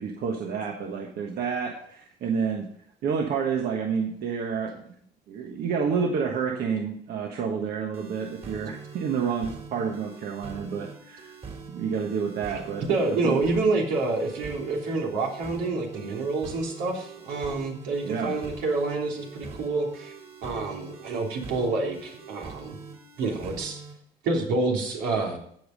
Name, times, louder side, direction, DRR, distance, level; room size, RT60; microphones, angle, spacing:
voice 1, 0.0-2.7 3.0-4.9 5.3-11.3 11.7-12.9 13.2-13.6 18.0-18.4, right 6 dB, 65° right, 2 dB, 1.4 m, -29 dB
sound 1, 7.9-23.9, right 4 dB, 40° right, 3.0 m, -43 dB
voice 2, 12.9-20.1 20.4-22.8 23.2-23.8 24.2-25.4, right 3 dB, 85° right, 0 dB, 3.4 m, -28 dB
16.0 x 5.4 x 5.3 m, 0.64 s
cardioid pair, 110°, 17 cm